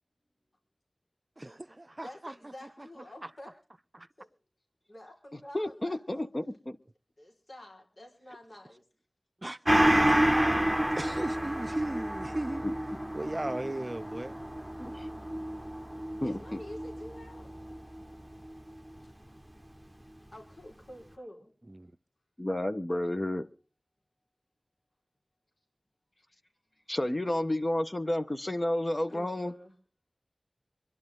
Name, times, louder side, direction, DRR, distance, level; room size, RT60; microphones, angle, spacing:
voice 1, 1.4-2.3 4.0-4.1 9.4-10.4 11.0-12.6 13.1-14.4 21.7-21.9, right 1 dB, 35° right, 0.6 m, -37 dB
voice 2, 2.0-3.5 4.2-4.3 4.8-6.2 7.2-8.8 16.2-17.5 18.0-18.4 19.0-19.3 20.3-21.5 26.1-26.9 29.1-29.7, left 1 dB, 65° left, 4.8 m, -49 dB
voice 3, 5.5-6.8 12.6-12.7 14.8-15.1 16.2-16.6 22.4-23.5 26.9-29.5, left 1 dB, 35° left, 1.3 m, -31 dB
Gong, 9.7-18.6 19.0-19.1, right 1 dB, 10° right, 1.3 m, -29 dB
25.0 x 11.5 x 3.8 m
wide cardioid pair, 45°, 0 cm